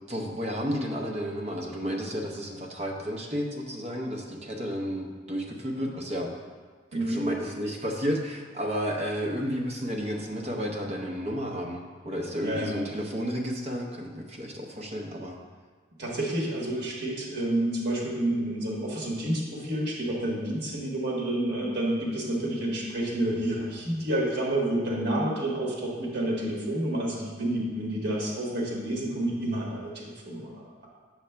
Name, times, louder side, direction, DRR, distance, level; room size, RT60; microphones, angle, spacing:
voice 1, 0.1-6.3 6.9-15.4, equal, 35° right, 0 dB, 0.7 m, -32 dB
voice 2, 6.9-7.2 12.4-12.7 16.0-30.9, right 1 dB, 60° right, -3 dB, 1.3 m, -29 dB
7.1 x 6.6 x 2.2 m, 1.5 s
head